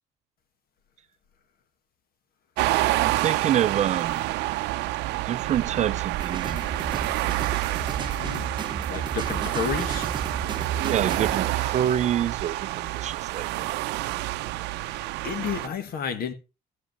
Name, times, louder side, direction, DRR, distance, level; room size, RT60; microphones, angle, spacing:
sound 1, 2.6-15.7, right 17 dB, 90° right, 0.6 m, -28 dB
voice 1, 3.0-4.3 5.2-6.7 10.8-13.8, right 10 dB, 45° right, 0.5 m, -27 dB
sound 2, 6.2-11.4, right 5 dB, 25° right, 0.9 m, -33 dB
voice 2, 8.1-8.5 8.9-10.1 14.6-16.3, left 7 dB, 60° left, 1.5 m, -32 dB
14.0 x 5.2 x 5.2 m
cardioid pair, 110°, 17 cm